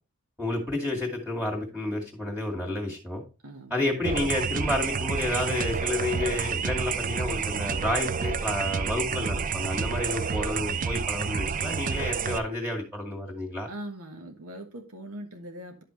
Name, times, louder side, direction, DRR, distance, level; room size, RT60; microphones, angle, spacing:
voice 1, 0.4-3.2 3.7-13.7, left 1 dB, 5° right, -3 dB, 2.2 m, -30 dB
voice 2, 3.4-3.9 13.7-15.8, right 1 dB, 80° right, 4 dB, 1.5 m, -41 dB
sound 1, 4.0-12.4, right 6 dB, 35° right, 0.5 m, -29 dB
11.0 x 6.0 x 3.2 m, 0.30 s
head